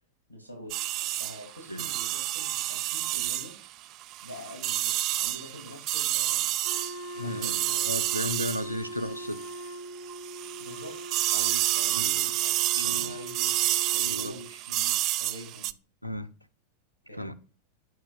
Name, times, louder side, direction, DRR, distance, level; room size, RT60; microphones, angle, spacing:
voice 1, 0.3-0.8 1.2-3.5 4.2-6.4 7.1-8.6 10.6-11.0 11.3-15.7 17.1-17.3, equal, 90° right, 2.2 m, -45 dB
sound 1, 0.7-9.7 10.1-15.7, right 15 dB, 40° right, 0.3 m, -29 dB
Wind instrument woodwind instrument, 6.6-14.5, right 1 dB, 25° left, 2.1 m, -41 dB
voice 2, 7.2-7.6 7.8-9.4 12.0-12.2 12.8-13.2 14.1-14.3 16.0-16.3 17.2-17.3, left 1 dB, 90° left, 0.5 m, -34 dB
9.4 x 5.6 x 2.3 m
figure-of-eight pair, 90°, 0 cm